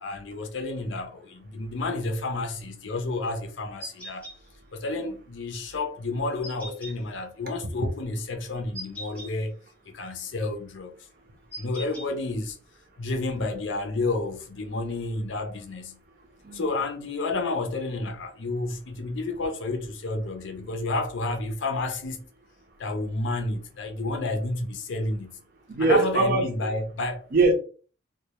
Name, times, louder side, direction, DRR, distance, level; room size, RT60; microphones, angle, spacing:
voice 1, 0.0-4.3 4.7-9.5 9.9-11.0 11.6-12.6 13.0-16.0 16.5-22.2 22.8-25.4 25.8-27.2, left 2 dB, 75° left, 0.5 m, -30 dB
sound 1, 3.8-4.3 6.4-6.9 8.7-9.3 11.5-12.1, right 1 dB, 10° left, 0.6 m, -39 dB
voice 2, 25.7-26.7 27.3-27.5, right 3 dB, 50° right, 0.5 m, -22 dB
2.1 x 2.0 x 2.8 m
head